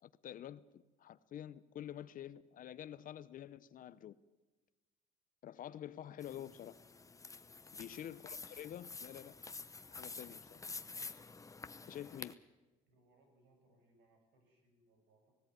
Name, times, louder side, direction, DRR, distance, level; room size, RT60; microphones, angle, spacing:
voice 1, 0.0-4.2 5.4-6.8 7.7-9.4 9.9-10.6 11.1-11.2 11.9-12.3, left 11 dB, 55° left, 0.7 m, -48 dB
sound 1, 6.2-12.3, left 4 dB, 20° left, 0.9 m, -49 dB
voice 2, 7.7-8.1 12.9-15.3, right 1 dB, 85° right, 6.2 m, -72 dB
19.0 x 16.5 x 9.4 m
cardioid pair, 110°, 17 cm